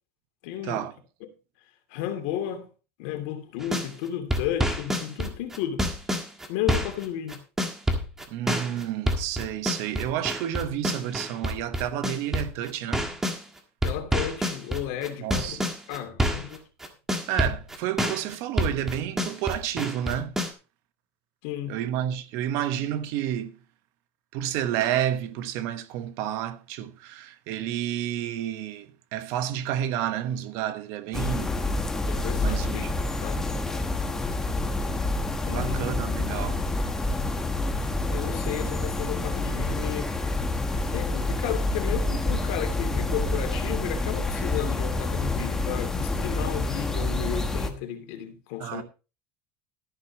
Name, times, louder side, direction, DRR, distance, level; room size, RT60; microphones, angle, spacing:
voice 1, 0.4-0.9 1.2-1.3 1.9-2.7 3.0-5.9 6.5-7.4 13.8-15.6 15.9-16.6 21.4-21.8 32.1-32.8 33.2-33.5 35.4-35.9 38.1-40.1 40.9-48.8, left 11 dB, 70° left, 2.8 m, -33 dB
sound 1, 3.6-3.9 4.3-13.4 13.8-16.6 16.8-20.5, equal, 5° right, 1.7 m, -27 dB
voice 2, 8.3-13.1 15.2-15.6 17.3-20.4 21.7-23.5 24.3-31.5 32.4-32.9 35.5-36.6 48.6-48.8, right 11 dB, 60° right, 1.3 m, -30 dB
sound 2, 31.1-47.7, left 2 dB, 10° left, 1.2 m, -28 dB
13.5 x 11.0 x 3.0 m
cardioid pair, 160°, 6 cm